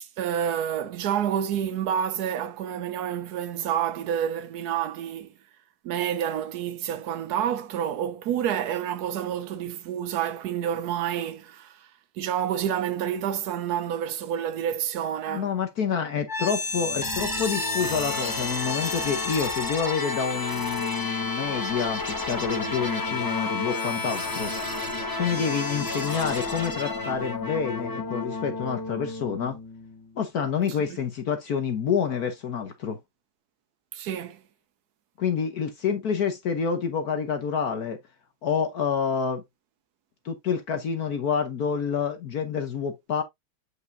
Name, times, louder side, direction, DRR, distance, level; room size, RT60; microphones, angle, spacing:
voice 1, 0.0-5.3 5.8-15.5 33.9-34.4, right 9 dB, 80° right, 0.8 m, -29 dB
voice 2, 15.3-24.5 25.2-29.6 30.2-33.0 35.2-38.0 38.4-39.4 40.2-43.2, left 6 dB, 55° left, 1.2 m, -28 dB
sound 1, 16.3-30.2, left 3 dB, 20° left, 0.6 m, -31 dB
8.1 x 5.0 x 2.6 m
omnidirectional pair, 2.4 m